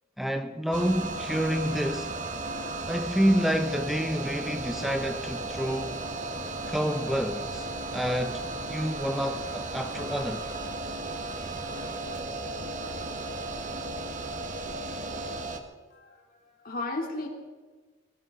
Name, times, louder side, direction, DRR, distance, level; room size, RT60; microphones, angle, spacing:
voice 1, 0.2-2.1 2.9-6.0 6.7-10.5, equal, ahead, 0.6 m, -28 dB
sound 1, 0.7-15.6, right 2 dB, 40° right, 1.3 m, -35 dB
voice 2, 15.9-17.3, left 2 dB, 45° left, 2.9 m, -35 dB
19.5 x 19.5 x 3.8 m
head